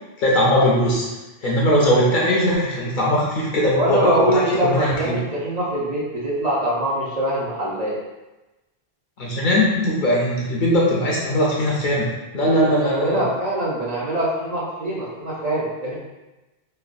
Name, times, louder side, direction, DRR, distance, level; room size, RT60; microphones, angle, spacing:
voice 1, 0.2-1.0 1.4-5.2 9.2-12.1 12.3-13.3, equal, 60° left, -4 dB, 0.6 m, -20 dB
voice 2, 3.7-8.0 12.4-15.9, right 1 dB, 50° right, -7 dB, 0.6 m, -23 dB
3.2 x 2.1 x 2.5 m, 1.1 s
omnidirectional pair, 1.1 m